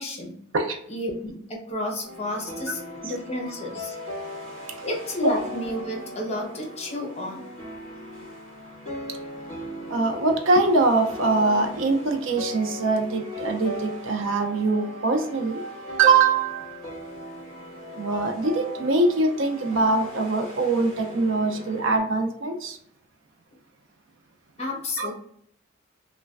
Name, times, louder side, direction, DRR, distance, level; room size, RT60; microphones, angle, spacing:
voice 1, 0.0-0.4 0.9-4.0 4.8-7.5 24.6-25.1, left 1 dB, 30° left, 0.7 m, -31 dB
sound 1, 2.0-22.0, equal, 25° right, 1.4 m, -38 dB
voice 2, 9.9-15.6 16.0-16.8 17.9-22.8 25.0-25.1, right 3 dB, 70° right, 0.5 m, -23 dB
3.1 x 2.2 x 2.4 m
head